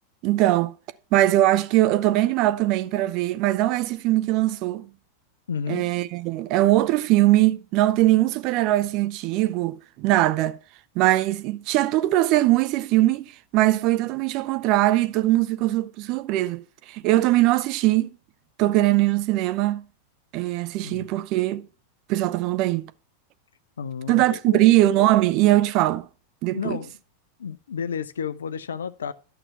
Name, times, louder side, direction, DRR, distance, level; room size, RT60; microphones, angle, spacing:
voice 1, 0.2-0.7 1.1-4.9 5.7-10.6 11.0-18.1 18.6-19.8 20.3-21.7 22.1-22.9 24.1-26.1 26.4-26.8, right 16 dB, 40° right, 0.6 m, -21 dB
voice 2, 5.5-5.9 20.8-21.1 23.8-24.7 26.5-26.9 27.4-29.1, left 7 dB, 65° left, 0.6 m, -31 dB
11.5 x 5.9 x 5.7 m
figure-of-eight pair, 90°, 0 cm